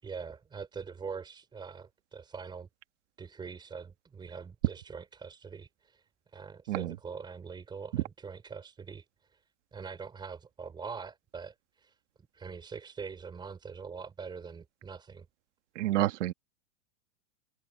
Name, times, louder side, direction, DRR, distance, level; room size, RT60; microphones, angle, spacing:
voice 1, 0.0-2.7 3.2-6.0 6.3-9.1 9.3-9.4 9.7-12.0 12.3-15.2, right 5 dB, 10° right, 5.0 m, -43 dB
voice 2, 15.7-16.3, right 15 dB, 55° right, 1.4 m, -29 dB
supercardioid pair, 170°, 43 cm